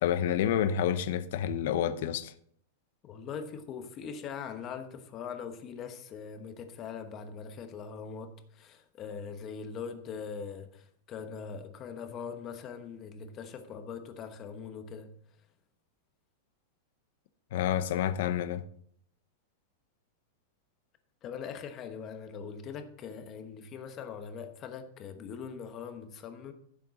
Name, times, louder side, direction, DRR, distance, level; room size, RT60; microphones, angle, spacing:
voice 1, 0.0-2.3 17.5-18.6, left 10 dB, 55° left, 0.8 m, -29 dB
voice 2, 3.0-15.5 21.2-26.5, left 6 dB, 25° left, 1.1 m, -42 dB
14.5 x 7.4 x 4.1 m
supercardioid pair, 175°, 0 cm